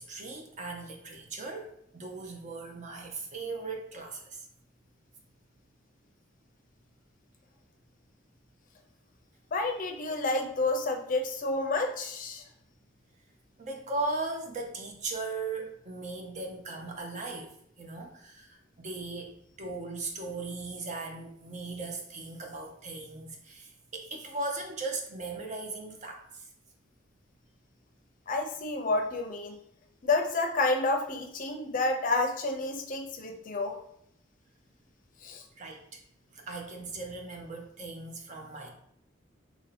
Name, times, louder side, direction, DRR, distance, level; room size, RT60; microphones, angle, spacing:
voice 1, 0.0-4.5 13.6-26.5 35.6-36.0 36.3-38.7, right 3 dB, 40° right, 2 dB, 0.6 m, -38 dB
voice 2, 9.5-12.4 28.3-29.6 30.0-33.7 35.2-35.4, left 2 dB, 45° left, 3 dB, 0.5 m, -29 dB
2.9 x 2.7 x 4.1 m, 0.71 s
head